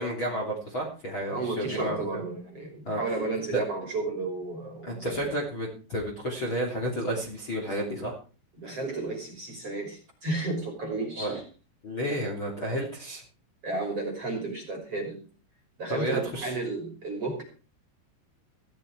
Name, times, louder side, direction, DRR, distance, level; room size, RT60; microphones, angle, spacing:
voice 1, 0.0-2.2 2.8-3.0 3.5-3.6 4.8-8.1 11.2-11.4 11.8-13.2 15.9-16.5, right 1 dB, 30° left, -1 dB, 3.0 m, -31 dB
voice 2, 1.3-5.4 8.6-11.4 13.6-15.2 15.8-17.4, right 3 dB, 35° right, 2 dB, 3.3 m, -33 dB
15.5 x 12.0 x 4.7 m, 0.36 s
omnidirectional pair, 5.9 m